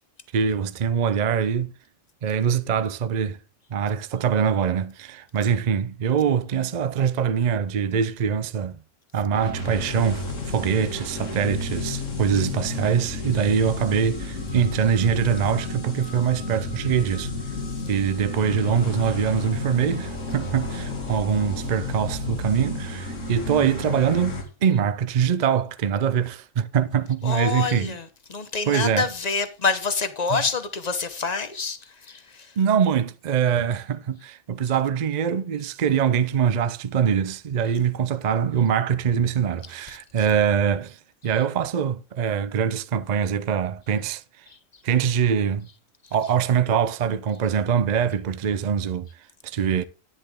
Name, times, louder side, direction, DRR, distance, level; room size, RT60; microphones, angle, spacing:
voice 1, 0.3-1.7 2.2-3.4 3.7-8.8 9.1-17.5 17.9-28.0 28.7-29.1 30.3-30.4 32.6-41.0 41.2-44.2 44.8-45.7 46.1-49.1 49.4-49.8, right 7 dB, 50° right, 0.5 m, -23 dB
sound 1, 9.3-24.4, left 2 dB, 85° left, 2.6 m, -31 dB
voice 2, 27.2-28.0 28.3-31.8 32.1-32.5, left 4 dB, 35° left, 1.0 m, -26 dB
10.0 x 9.7 x 3.6 m
omnidirectional pair, 1.3 m